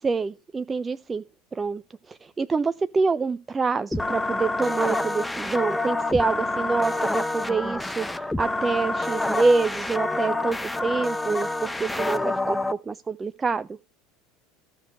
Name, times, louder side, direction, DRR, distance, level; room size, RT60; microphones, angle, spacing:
voice 1, 0.0-1.2 1.5-8.1 8.4-13.8, right 4 dB, 20° right, 0.5 m, -26 dB
sound 1, 3.9-12.7, left 2 dB, 5° left, 0.9 m, -27 dB
13.5 x 6.4 x 4.8 m
figure-of-eight pair, 75°, 0 cm